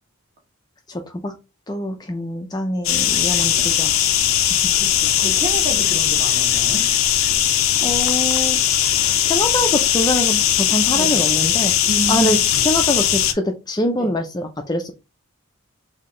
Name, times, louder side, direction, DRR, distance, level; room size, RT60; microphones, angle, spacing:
voice 1, 0.9-1.3 1.7-4.0 7.8-8.6 9.0-11.7 12.1-12.4 12.6-14.9, left 1 dB, 20° left, 0.4 m, -24 dB
sound 1, 2.8-13.3, left 10 dB, 75° left, 0.5 m, -19 dB
voice 2, 4.8-6.8 10.9-11.2 11.8-12.4 13.9-14.1, right 2 dB, 35° right, 1.4 m, -29 dB
3.8 x 2.8 x 3.7 m
head